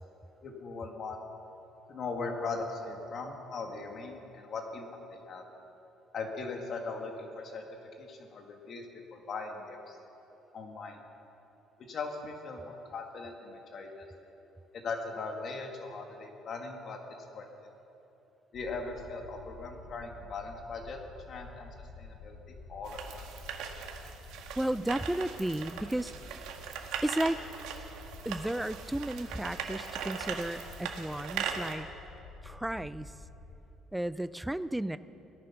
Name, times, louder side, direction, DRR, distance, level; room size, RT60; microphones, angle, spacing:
voice 1, 0.4-1.2 1.9-5.4 6.1-7.6 8.0-10.0 10.5-11.0 11.9-14.0 14.8-17.0 17.3-17.5 18.5-21.0 21.3-21.7 22.0-23.3, left 3 dB, 40° left, 3 dB, 1.7 m, -39 dB
sound 1, 18.5-33.5, left 2 dB, 85° left, 2.8 m, -50 dB
sound 2, 22.9-31.7, right 7 dB, 80° right, 1.5 m, -40 dB
voice 2, 24.6-26.1 27.0-27.4 28.3-31.9 32.4-33.1 33.9-35.0, right 1 dB, 5° right, 14 dB, 0.3 m, -33 dB
17.5 x 13.5 x 5.7 m, 3.0 s
cardioid pair, 160°, 0 cm